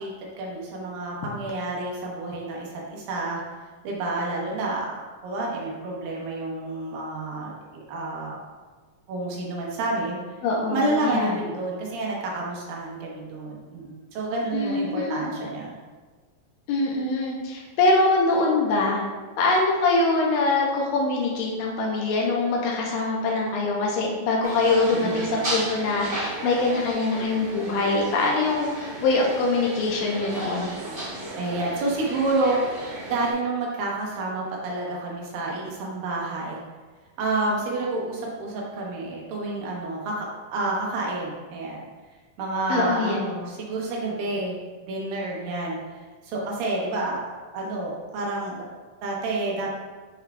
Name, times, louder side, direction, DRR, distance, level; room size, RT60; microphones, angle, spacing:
voice 1, 0.0-3.4 3.8-4.9 5.2-7.5 7.9-8.4 9.1-10.2 10.6-15.7 24.9-25.3 31.4-32.8 33.1-36.6 37.2-40.3 40.5-41.8 42.4-44.6 44.8-48.7 49.0-49.7, right 2 dB, 90° right, -3 dB, 2.8 m, -29 dB
voice 2, 10.4-11.4 14.5-15.3 16.7-19.0 19.4-30.7 42.7-43.2, left 3 dB, 90° left, -2 dB, 2.5 m, -23 dB
sound 1, 24.4-33.3, right 2 dB, 35° right, 0.8 m, -34 dB
7.0 x 5.9 x 2.3 m, 1.4 s
omnidirectional pair, 4.0 m